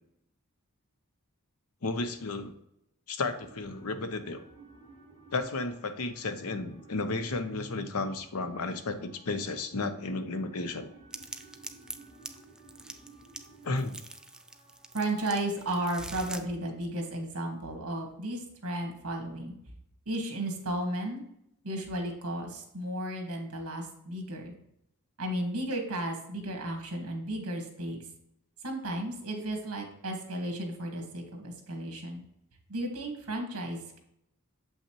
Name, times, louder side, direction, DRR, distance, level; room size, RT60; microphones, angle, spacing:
voice 1, 1.8-2.5 3.1-4.4 5.3-10.9 13.6-14.0, left 3 dB, 70° left, 9 dB, 0.7 m, -33 dB
sound 1, 3.3-15.2, right 3 dB, 30° left, 2.0 m, -56 dB
sound 2, 11.1-16.4, right 2 dB, 5° right, 0.3 m, -45 dB
voice 2, 14.9-19.5 20.0-21.2 21.6-24.5 25.2-28.0 28.6-32.2 32.7-34.0, right 1 dB, 70° right, 3 dB, 1.6 m, -34 dB
7.2 x 5.6 x 2.9 m, 0.78 s
head